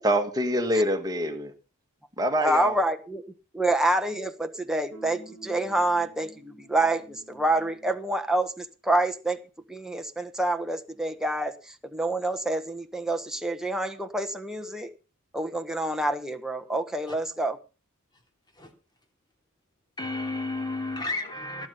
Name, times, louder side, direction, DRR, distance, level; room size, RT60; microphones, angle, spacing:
voice 1, 0.0-1.5 2.2-2.8, equal, 20° right, 1.9 m, -25 dB
voice 2, 2.4-3.2 3.5-9.4 9.7-14.9 15.3-17.6, right 1 dB, ahead, 1.2 m, -27 dB
sound 1, 4.9-8.1, right 2 dB, 90° left, 5.1 m, -49 dB
voice 3, 20.0-21.7, left 2 dB, 20° left, 2.9 m, -32 dB
18.0 x 8.0 x 5.6 m
head